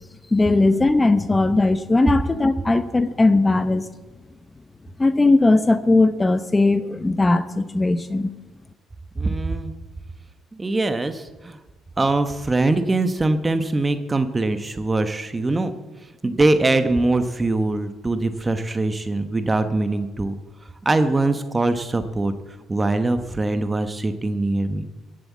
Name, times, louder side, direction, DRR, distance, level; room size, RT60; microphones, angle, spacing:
voice 1, 0.3-3.9 5.0-8.3, left 2 dB, 20° left, 11 dB, 0.8 m, -18 dB
voice 2, 9.1-9.7 10.5-11.6 12.0-15.7 16.2-20.4 20.8-22.3 22.7-24.9, right 2 dB, 20° right, 9 dB, 1.0 m, -22 dB
15.5 x 7.8 x 8.2 m, 1.1 s
cardioid pair, 85°, 0 cm